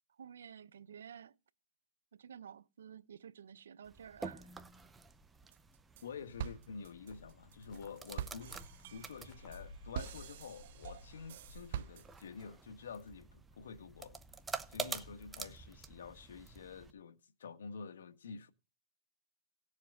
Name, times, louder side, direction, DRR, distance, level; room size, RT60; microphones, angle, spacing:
voice 1, 0.2-1.4 2.1-4.5, right 8 dB, 85° right, 0.7 m, -52 dB
sound 1, 3.8-16.9, right 4 dB, 10° right, 0.7 m, -49 dB
sound 2, 5.5-6.1 6.4-12.4, right 11 dB, 55° right, 0.8 m, -45 dB
voice 2, 6.0-8.6 8.9-14.2 14.7-18.5, left 5 dB, 85° left, 1.4 m, -48 dB
Cricket, 7.1-12.3, left 1 dB, 30° left, 2.8 m, -56 dB
17.5 x 7.4 x 3.7 m
hypercardioid pair, 150°, 0 cm